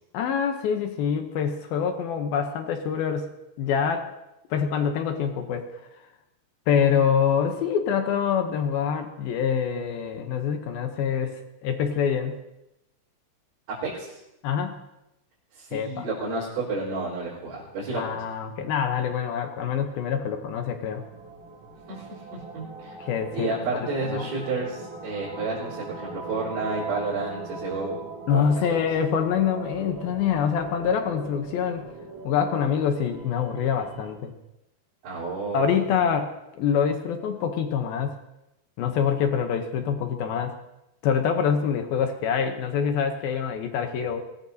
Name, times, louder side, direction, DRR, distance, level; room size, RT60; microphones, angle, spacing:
voice 1, 0.1-4.1 4.5-5.8 6.7-12.4 14.4-14.8 15.7-16.1 17.9-21.0 23.0-23.6 24.0-24.3 28.3-31.9 32.2-34.3 35.5-38.2 38.8-40.6 41.0-44.2, left 7 dB, 75° left, 6 dB, 2.3 m, -25 dB
voice 2, 13.8-14.2 15.5-18.2 21.9-23.0 23.3-28.0 28.3-28.9 35.0-35.7, right 3 dB, 85° right, -9 dB, 6.3 m, -31 dB
sound 1, 21.0-34.1, right 3 dB, 35° right, 3.4 m, -40 dB
23.5 x 18.5 x 2.8 m, 0.90 s
omnidirectional pair, 5.2 m